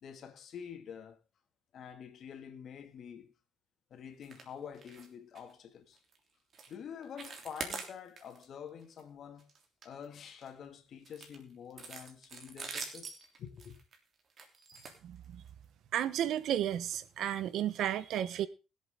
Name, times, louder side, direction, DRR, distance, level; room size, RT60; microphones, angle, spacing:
voice 1, 0.0-1.2 1.7-3.3 3.9-6.0 6.7-9.5 9.8-13.1 13.4-13.8, left 7 dB, 65° left, 2.1 m, -47 dB
sound 1, 4.2-4.5 4.7-5.1 5.3-5.5 6.0-6.2 6.5-6.7 7.0-8.4 8.8-9.0 9.4-10.5 11.0-15.6 16.4-16.5 16.9-17.0 17.4-17.5, right 4 dB, 55° right, 3.2 m, -45 dB
voice 2, 15.0-15.4 15.9-18.5, right 11 dB, 80° right, 0.9 m, -33 dB
22.0 x 8.0 x 3.7 m
cardioid pair, 90°, 0 cm